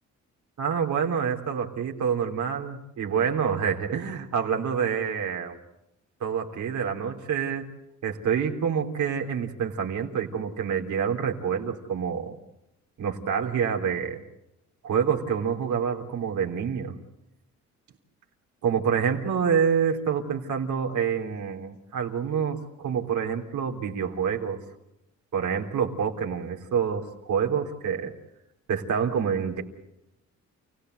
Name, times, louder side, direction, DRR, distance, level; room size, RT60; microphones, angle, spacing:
voice 1, 0.6-5.6 6.2-7.7 8.0-12.4 13.0-14.2 14.8-16.9 18.6-24.6 25.3-28.1 28.7-29.6, right 7 dB, 75° right, 2 dB, 3.6 m, -27 dB
29.5 x 17.5 x 7.9 m, 0.87 s
cardioid pair, 90°, 30 cm